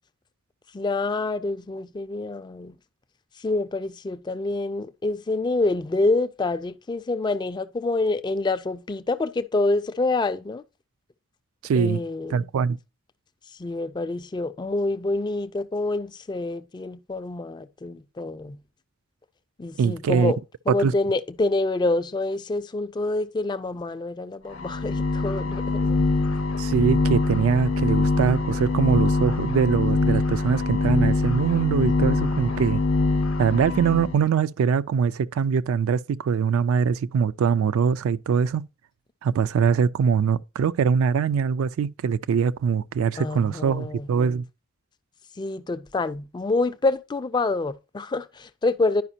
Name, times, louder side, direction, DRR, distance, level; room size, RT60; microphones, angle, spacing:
voice 1, 0.7-2.7 3.4-10.6 11.8-12.4 13.6-18.6 19.6-20.4 20.7-26.1 43.2-44.1 45.4-49.0, left 2 dB, 20° left, 0.3 m, -27 dB
voice 2, 11.6-12.0 12.3-12.8 19.8-20.3 20.7-20.9 26.6-32.8 33.4-38.7 39.2-44.4, right 6 dB, 75° right, 0.3 m, -22 dB
sound 1, 24.5-34.2, left 3 dB, 70° left, 0.7 m, -24 dB
11.0 x 5.0 x 2.7 m
head